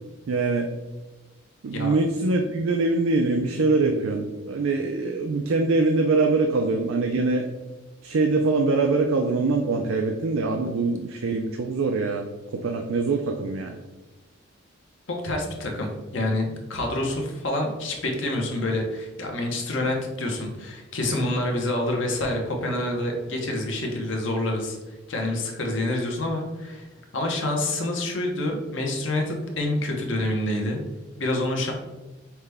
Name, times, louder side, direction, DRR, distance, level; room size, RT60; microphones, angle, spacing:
voice 1, 0.3-0.7 1.6-7.5 8.0-12.3 12.5-13.8, right 3 dB, 85° right, 3 dB, 0.4 m, -23 dB
voice 2, 15.2-24.8 25.1-26.9 27.1-30.8 31.2-31.7, left 1 dB, 70° left, 2 dB, 0.9 m, -27 dB
5.7 x 2.2 x 3.3 m, 1.1 s
head